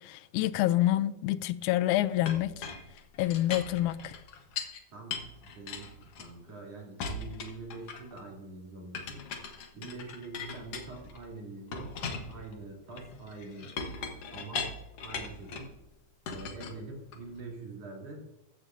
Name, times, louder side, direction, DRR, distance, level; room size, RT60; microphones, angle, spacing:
voice 1, 0.0-2.7 3.2-4.1, left 14 dB, 85° left, 2.0 m, -27 dB
Chink clink, 2.3-4.8 5.1-6.6 7.0-8.2 8.9-11.2 11.7-15.7 16.3-17.4, left 5 dB, 60° left, 2.0 m, -39 dB
voice 2, 4.9-9.2 9.7-11.9 12.3-13.8 14.3-14.7 15.0-15.7 16.3-18.2, right 3 dB, 55° right, 4.3 m, -45 dB
14.5 x 13.5 x 2.7 m
omnidirectional pair, 3.4 m